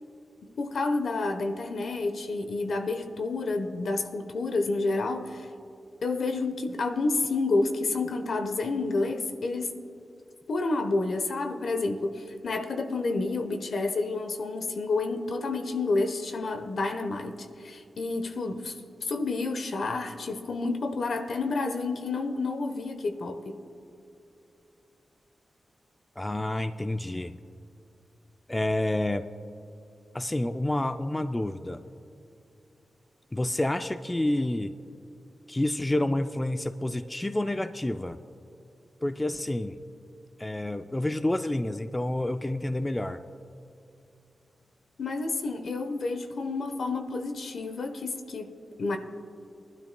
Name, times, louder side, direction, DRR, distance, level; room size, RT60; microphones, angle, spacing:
voice 1, 0.6-5.5 6.0-9.8 10.5-18.7 19.0-23.6 45.0-48.5 48.8-49.0, left 3 dB, 65° left, 7 dB, 0.9 m, -29 dB
voice 2, 26.2-27.4 28.5-29.2 30.1-31.8 33.3-34.7 35.5-38.2 39.0-39.8 40.4-43.2, left 1 dB, 15° left, 8 dB, 0.3 m, -29 dB
22.0 x 12.0 x 2.2 m, 2.7 s
wide cardioid pair, 120°, 0 cm